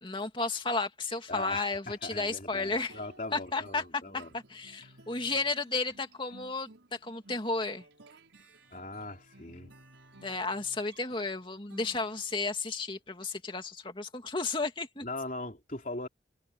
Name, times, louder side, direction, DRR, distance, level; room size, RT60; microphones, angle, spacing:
voice 1, 0.0-3.0 3.3-3.8 4.3-7.8 10.2-15.1, left 3 dB, 25° left, 2.4 m, -33 dB
voice 2, 1.3-4.3 8.7-9.7 15.0-16.1, left 2 dB, 45° left, 3.4 m, -40 dB
sound 1, 2.9-12.5, right 2 dB, 90° right, 5.8 m, -57 dB
head